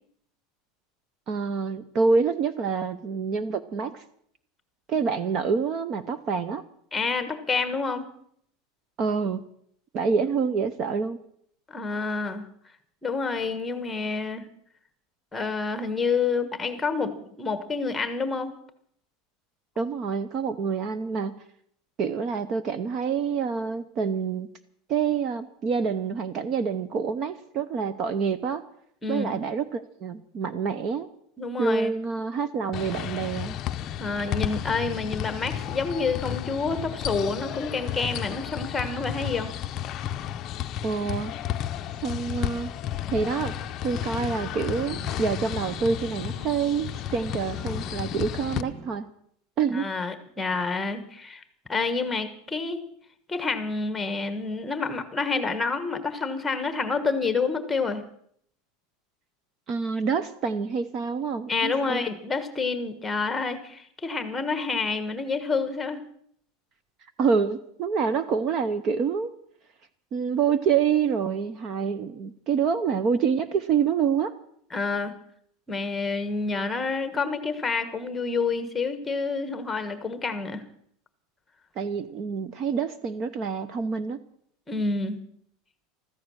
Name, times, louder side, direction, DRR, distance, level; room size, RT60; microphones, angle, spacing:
voice 1, 1.3-4.0 4.9-6.6 9.0-9.4 9.9-11.2 19.8-21.3 22.0-24.5 24.9-28.6 29.1-31.1 31.6-33.6 40.8-41.3 42.0-42.7 43.1-43.5 43.8-49.1 49.6-49.9 59.7-62.1 67.2-69.3 70.1-74.3 81.8-84.2, right 5 dB, 30° right, 14 dB, 0.7 m, -27 dB
voice 2, 6.9-8.1 11.7-12.5 13.0-14.5 15.3-18.5 29.0-29.4 31.4-31.9 34.0-39.5 49.7-51.4 51.7-52.8 53.3-58.0 61.5-66.0 74.7-75.2 75.7-80.6 84.7-85.2, left 4 dB, 10° left, 10 dB, 1.3 m, -28 dB
sound 1, 32.7-48.6, left 11 dB, 30° left, 0.6 m, -33 dB
sound 2, 43.3-48.9, right 2 dB, 55° right, 6.0 m, -45 dB
15.0 x 13.5 x 6.4 m, 0.66 s
supercardioid pair, 170°, 0 cm